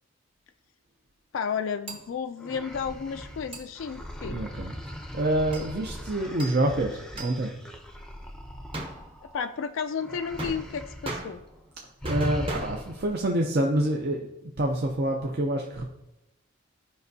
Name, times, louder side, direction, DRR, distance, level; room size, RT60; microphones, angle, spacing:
voice 1, 1.3-4.4 9.3-11.4, left 6 dB, 70° left, 8 dB, 0.3 m, -32 dB
sound 1, 1.9-2.2 3.5-3.7 5.5-5.7 6.4-6.7 7.2-7.4 8.7-9.4 10.4-11.7 12.1-13.1, right 2 dB, 25° right, 0.9 m, -38 dB
sound 2, 2.4-9.5 10.0-11.2 11.5-11.7 12.0-13.1, equal, 5° left, 0.6 m, -39 dB
voice 2, 4.3-7.5 12.0-15.9, right 1 dB, 50° right, 1 dB, 0.6 m, -27 dB
13.0 x 5.2 x 2.7 m, 0.91 s
head